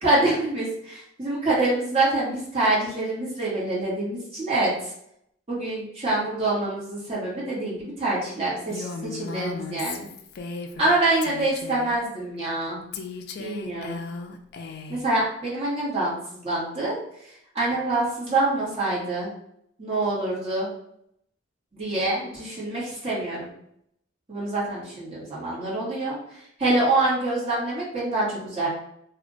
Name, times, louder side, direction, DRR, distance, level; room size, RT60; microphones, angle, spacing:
voice 1, 0.0-4.9 5.5-10.1 10.8-12.8 13.4-14.0 14.9-16.9 17.5-19.3 19.8-20.7 21.8-23.5 24.3-26.2 26.6-28.7, right 2 dB, 30° right, -7 dB, 1.2 m, -25 dB
Female speech woman speaking, 8.7-11.0 11.2-12.0 12.9-15.1, left 4 dB, 55° left, 0.3 m, -36 dB
2.4 x 2.1 x 3.7 m, 0.72 s
head